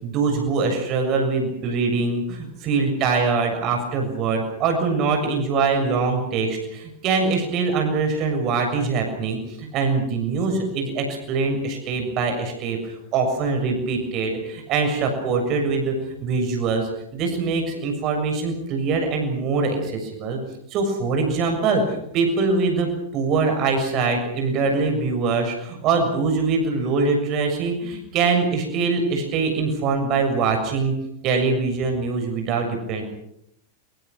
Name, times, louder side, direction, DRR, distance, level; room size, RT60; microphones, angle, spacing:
voice 1, 0.0-15.9 16.2-20.4 20.7-30.9 31.2-33.0, right 4 dB, 35° right, 4 dB, 7.2 m, -23 dB
26.5 x 26.5 x 6.4 m, 0.76 s
figure-of-eight pair, 90°, 0 cm